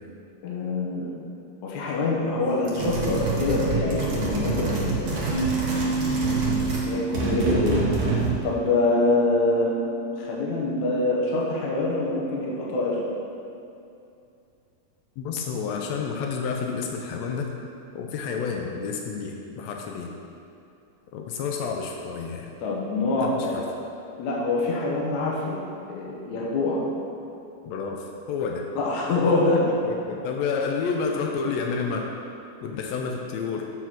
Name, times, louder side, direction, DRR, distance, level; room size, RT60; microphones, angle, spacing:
voice 1, 0.4-1.1 1.6-5.5 6.8-7.8 8.4-9.7 10.2-13.0 22.6-23.6 24.2-25.5 25.9-26.8 28.8-29.6, left 2 dB, 65° left, -4 dB, 2.3 m, -25 dB
sound 1, 2.6-6.9 7.1-8.4, right 3 dB, 85° right, 0.8 m, -27 dB
sound 2, 5.3-10.5, right 4 dB, 45° left, 2.3 m, -30 dB
voice 2, 15.2-17.5 17.9-20.1 21.1-22.5 23.2-23.6 27.6-28.7 29.2-32.1 32.6-33.7, left 5 dB, 90° left, 1 dB, 1.5 m, -30 dB
7.9 x 4.6 x 5.9 m, 2.6 s
omnidirectional pair, 3.8 m